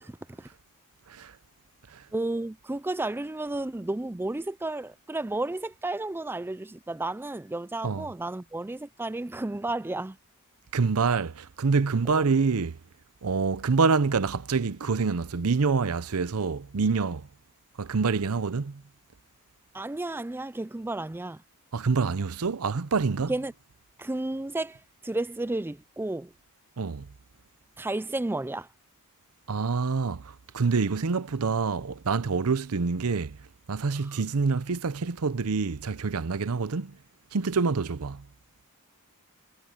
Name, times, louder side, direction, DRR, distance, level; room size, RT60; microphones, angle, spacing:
voice 1, 0.0-0.5 2.1-10.2 12.1-12.2 19.7-21.4 23.3-23.5 24.0-26.3 27.8-28.7 34.0-34.1, right 2 dB, 10° right, 0.4 m, -32 dB
voice 2, 10.7-12.8 13.2-17.3 17.8-18.8 21.7-23.3 26.8-27.1 29.5-33.4 33.7-37.0 37.3-38.2, right 4 dB, 75° right, 0.7 m, -26 dB
head